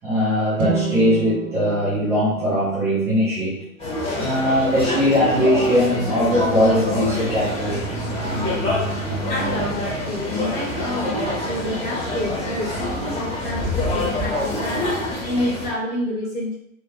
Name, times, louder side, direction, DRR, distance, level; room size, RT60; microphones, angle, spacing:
voice 1, 0.0-3.6 4.2-8.0, equal, 5° right, -12 dB, 0.4 m, -20 dB
sound 1, 0.5-3.8, right 5 dB, 80° right, 0.7 m, -30 dB
sound 2, 3.8-15.7, left 1 dB, 15° left, 1.1 m, -26 dB
voice 2, 9.3-16.5, left 1 dB, 70° left, -8 dB, 1.4 m, -28 dB
3.4 x 2.9 x 2.2 m, 0.75 s
figure-of-eight pair, 110°, 43 cm